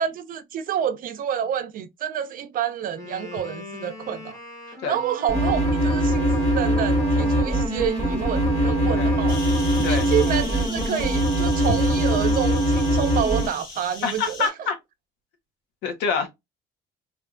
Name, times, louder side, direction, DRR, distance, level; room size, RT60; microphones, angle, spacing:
voice 1, 0.0-4.4 4.7-9.4 9.9-14.5, right 9 dB, 55° right, 0.4 m, -28 dB
Wind instrument woodwind instrument, 2.8-11.0, left 2 dB, 20° left, 1.0 m, -40 dB
sound 1, 5.3-13.5, right 1 dB, 35° left, 1.5 m, -22 dB
sound 2, 9.3-14.5, left 3 dB, 60° left, 1.1 m, -38 dB
voice 2, 14.0-14.7 15.8-16.3, left 5 dB, 90° left, 0.9 m, -26 dB
3.2 x 2.4 x 2.4 m
cardioid pair, 110°, 17 cm